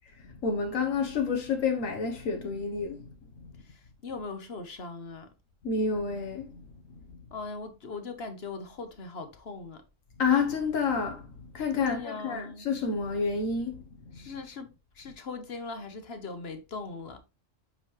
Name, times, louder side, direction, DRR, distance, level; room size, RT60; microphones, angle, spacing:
voice 1, 0.4-3.0 5.6-6.5 10.2-11.2 11.5-13.7, left 5 dB, 85° left, 1.6 m, -28 dB
voice 2, 4.0-5.3 7.3-9.8 11.7-12.7 14.1-14.7 15.0-17.2, left 4 dB, 55° left, 1.4 m, -39 dB
8.1 x 5.6 x 3.2 m
omnidirectional pair, 1.3 m